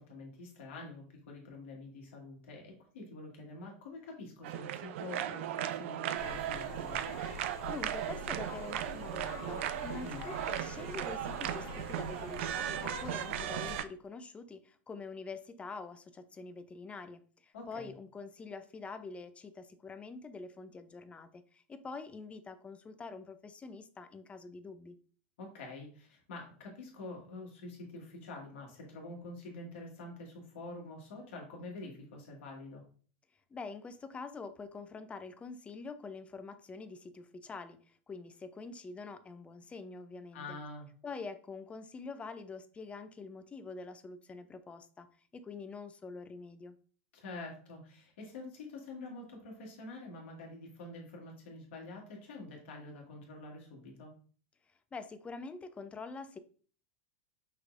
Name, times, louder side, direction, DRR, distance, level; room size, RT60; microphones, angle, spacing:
voice 1, 0.0-7.0 10.0-10.2 17.5-17.9 25.4-32.8 40.3-40.9 47.1-54.1, left 2 dB, 80° left, 0 dB, 1.7 m, -46 dB
sound 1, 4.4-13.8, right 12 dB, 75° right, 0.4 m, -37 dB
sound 2, 6.1-13.8, left 4 dB, 55° left, 1.0 m, -46 dB
voice 2, 7.7-25.0 33.5-40.6 41.0-45.1 45.3-46.8 54.9-56.4, left 4 dB, 20° left, 11 dB, 0.5 m, -45 dB
5.7 x 3.1 x 2.5 m, 0.42 s
supercardioid pair, 115°, 7 cm